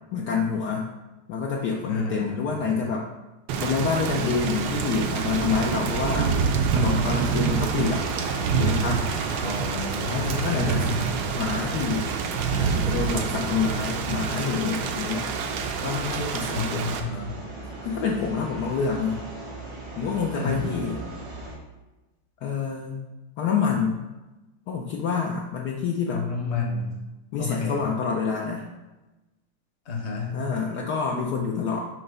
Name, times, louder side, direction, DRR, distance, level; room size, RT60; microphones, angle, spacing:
voice 1, 0.1-0.9 1.3-3.1 3.6-6.3 6.7-8.1 8.6-9.0 10.1-10.8 11.3-12.1 12.5-15.3 15.8-16.9 17.8-19.2 20.0-21.0 22.4-23.0 23.4-24.0 24.7-26.2 27.3-28.7 30.3-31.8, left 5 dB, 65° left, -1 dB, 1.1 m, -27 dB
voice 2, 1.9-2.9 9.4-11.1 16.5-17.3 20.3-20.6 26.1-26.9 27.4-27.9 29.9-30.4, left 3 dB, 45° left, 1 dB, 1.1 m, -31 dB
Thunder / Rain, 3.5-17.0, right 5 dB, 70° right, 1.1 m, -27 dB
sound 1, 4.1-21.5, right 2 dB, 90° right, 2.7 m, -38 dB
7.7 x 2.9 x 5.5 m, 1.1 s
omnidirectional pair, 2.1 m